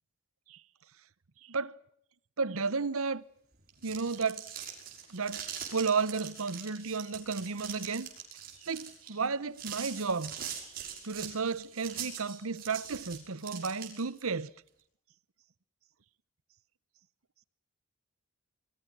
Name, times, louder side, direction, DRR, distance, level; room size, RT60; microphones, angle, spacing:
voice 1, 2.4-3.2 3.8-4.4 5.1-8.1 8.6-10.7 11.0-14.5, right 4 dB, 75° right, 0.9 m, -33 dB
sound 1, 3.6-14.2, right 9 dB, 40° right, 6.0 m, -42 dB
26.5 x 22.5 x 6.1 m
head